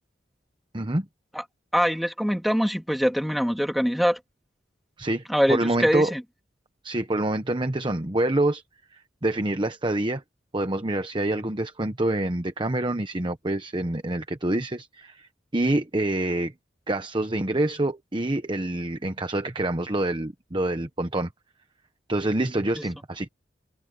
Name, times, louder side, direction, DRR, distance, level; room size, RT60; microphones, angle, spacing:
voice 1, 0.7-1.1 5.0-6.1 6.8-8.6 8.9-10.2 10.5-16.5 16.9-21.3 22.1-23.3, right 1 dB, 25° right, 1.0 m, -26 dB
voice 2, 1.7-4.2 5.3-6.2, equal, ahead, 2.5 m, -23 dB
open air
head